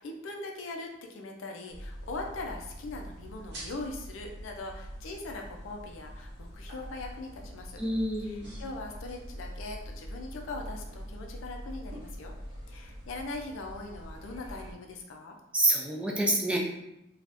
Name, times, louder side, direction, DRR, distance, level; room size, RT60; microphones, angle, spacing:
voice 1, 0.0-7.8 8.2-12.3 12.7-15.4, left 2 dB, 90° left, 2 dB, 0.4 m, -41 dB
sound 1, 1.7-14.7, equal, 60° right, 0.9 m, -44 dB
voice 2, 7.8-8.6 15.5-16.6, right 1 dB, 5° right, 0 dB, 0.3 m, -27 dB
2.5 x 2.3 x 3.3 m, 0.88 s
head